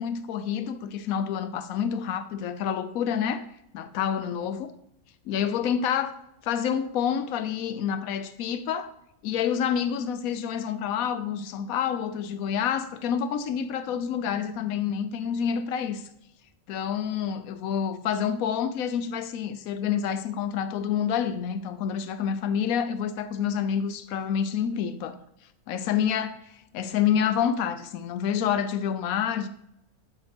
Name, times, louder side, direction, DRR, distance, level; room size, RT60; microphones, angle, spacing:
voice 1, 0.0-3.4 3.7-4.7 5.3-6.1 6.4-8.9 9.2-16.1 16.7-25.2 25.7-29.5, left 8 dB, 90° left, 1.1 m, -28 dB
11.5 x 6.4 x 3.5 m
omnidirectional pair, 1.4 m